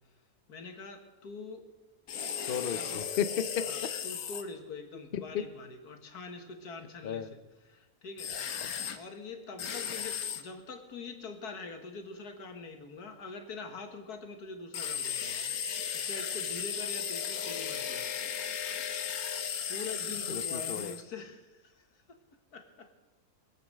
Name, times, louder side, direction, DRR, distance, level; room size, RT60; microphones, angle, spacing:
voice 1, 0.5-1.7 2.5-3.0 3.7-7.4 7.7-8.6 8.9-15.5 15.9-18.1 19.7-22.2 22.5-22.9, left 3 dB, 90° left, 5 dB, 2.0 m, -44 dB
sound 1, 2.1-4.4 8.2-9.0 9.6-10.4 14.7-21.0, left 8 dB, 70° left, 1.4 m, -35 dB
voice 2, 2.5-3.6 5.1-5.4 7.0-7.3 8.6-8.7 20.3-21.0, left 8 dB, 50° left, 11 dB, 0.7 m, -34 dB
22.0 x 7.9 x 6.5 m, 1.1 s
omnidirectional pair, 1.6 m